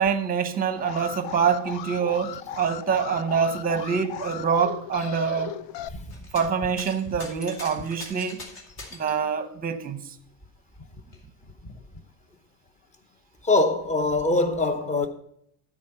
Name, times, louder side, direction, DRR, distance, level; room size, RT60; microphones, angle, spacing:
voice 1, 0.0-5.6 6.3-8.4 8.9-10.0, right 6 dB, 20° right, 0.7 m, -25 dB
Alarm, 0.8-5.9, left 11 dB, 80° left, 0.6 m, -37 dB
sound 1, 6.1-6.5 6.8-9.2 10.3-10.4 10.8-11.8 12.7-12.8, left 2 dB, 55° left, 2.6 m, -42 dB
voice 2, 13.4-15.1, left 2 dB, 15° left, 0.7 m, -23 dB
12.5 x 4.7 x 5.6 m
cardioid pair, 165°, 43 cm